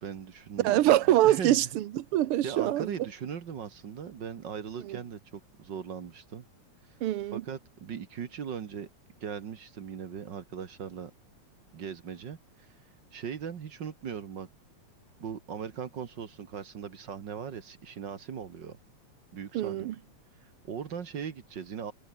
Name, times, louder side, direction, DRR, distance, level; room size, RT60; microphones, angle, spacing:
voice 1, 0.0-1.7 2.4-6.4 7.3-8.9 9.2-11.1 11.7-12.7 13.1-14.5 15.2-18.8 19.3-19.9 20.6-21.9, right 7 dB, 50° right, 1.6 m, -39 dB
voice 2, 0.6-2.9 4.9-5.0 7.0-7.4 19.5-19.9, right 14 dB, 65° right, 1.5 m, -24 dB
omnidirectional pair, 3.3 m